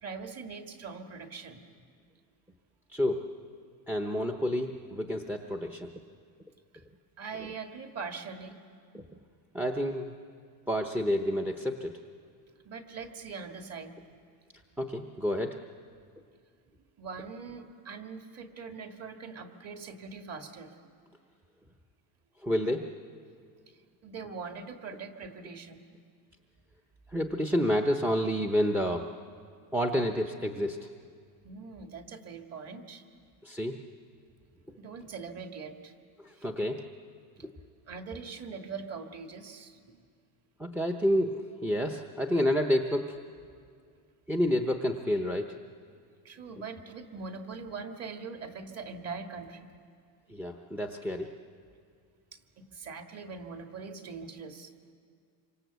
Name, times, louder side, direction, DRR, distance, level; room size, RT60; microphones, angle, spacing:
voice 1, 0.0-1.6 6.7-6.8 7.2-8.6 12.6-13.9 16.8-21.0 23.7-25.8 31.4-33.0 34.8-35.9 36.4-36.5 37.4-37.5 37.9-40.1 46.2-49.7 52.3-54.7, right 5 dB, 30° right, 5 dB, 1.9 m, -42 dB
voice 2, 2.9-3.2 3.9-5.9 8.9-9.0 9.5-10.1 10.7-12.0 14.8-15.6 22.4-22.9 27.1-29.1 29.7-30.9 33.4-33.8 36.2-36.8 37.4-37.5 40.6-43.2 44.3-45.5 50.3-51.3, equal, 5° right, 5 dB, 0.7 m, -29 dB
27.0 x 25.0 x 8.1 m, 2.2 s
cardioid pair, 155°, 48 cm